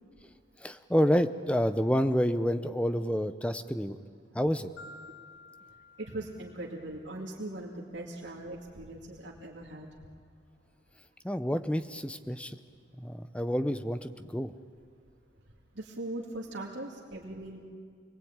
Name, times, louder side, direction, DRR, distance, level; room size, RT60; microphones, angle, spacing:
voice 1, 0.6-4.0 4.3-4.7 11.2-12.6 13.0-14.5, equal, 5° left, 10 dB, 0.7 m, -28 dB
Marimba xylophone, 4.8-7.0, left 3 dB, 80° left, 2.4 m, -52 dB
voice 2, 6.0-9.9 15.8-17.6, right 1 dB, 75° right, -2 dB, 2.5 m, -40 dB
27.0 x 21.0 x 8.9 m, 2.2 s
head